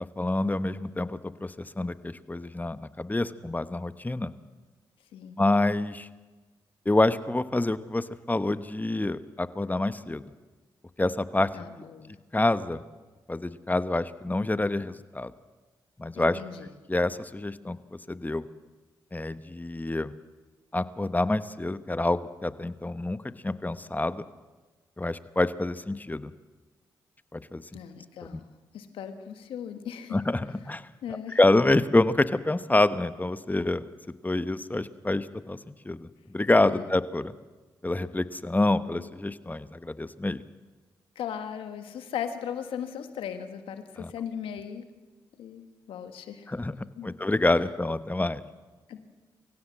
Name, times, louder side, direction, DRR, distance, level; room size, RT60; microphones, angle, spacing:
voice 1, 0.2-4.3 5.4-6.1 6.8-10.2 11.0-11.7 12.3-12.8 13.3-15.3 16.0-16.4 16.9-18.5 19.1-20.1 20.7-24.2 25.0-26.3 27.3-27.6 28.3-28.4 30.1-30.9 31.3-33.9 34.2-35.6 35.8-37.3 37.8-40.4 44.0-44.1 46.5-46.7 47.0-48.4, left 2 dB, 20° left, 13 dB, 1.1 m, -27 dB
voice 2, 11.5-12.2 16.2-16.7 27.7-30.2 31.0-31.4 36.6-37.0 41.1-44.8 45.4-46.5 47.0-47.1 48.9-49.0, left 8 dB, 85° left, 8 dB, 1.6 m, -38 dB
24.0 x 16.0 x 7.6 m, 1.3 s
supercardioid pair, 50°, 9 cm